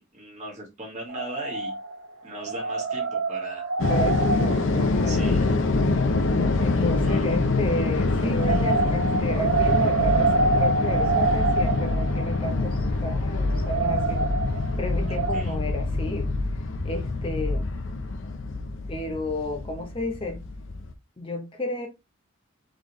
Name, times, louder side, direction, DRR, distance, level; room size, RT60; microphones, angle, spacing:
voice 1, 0.0-1.7 2.2-3.7 5.0-5.6 7.0-7.4 15.1-15.5, right 1 dB, 35° right, 1.7 m, -39 dB
sound 1, 1.1-2.1 2.4-5.5 8.2-15.4, right 4 dB, 85° right, 0.9 m, -27 dB
sound 2, 3.8-20.9, left 3 dB, 65° left, 0.6 m, -25 dB
voice 2, 3.9-5.4 6.6-14.3 14.8-16.3 16.8-17.7 18.9-20.4 21.2-21.9, left 1 dB, 25° left, 0.8 m, -32 dB
4.0 x 3.4 x 3.0 m
head